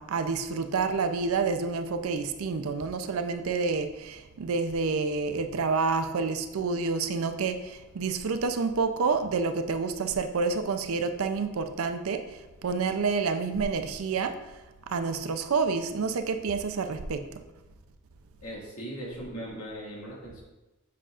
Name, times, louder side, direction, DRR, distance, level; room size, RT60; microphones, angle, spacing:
voice 1, 0.0-12.2 12.6-14.3 14.9-17.2, right 4 dB, 70° right, 8 dB, 0.5 m, -28 dB
voice 2, 18.4-20.4, right 1 dB, 75° left, -4 dB, 1.9 m, -39 dB
7.6 x 5.5 x 2.5 m, 1.1 s
head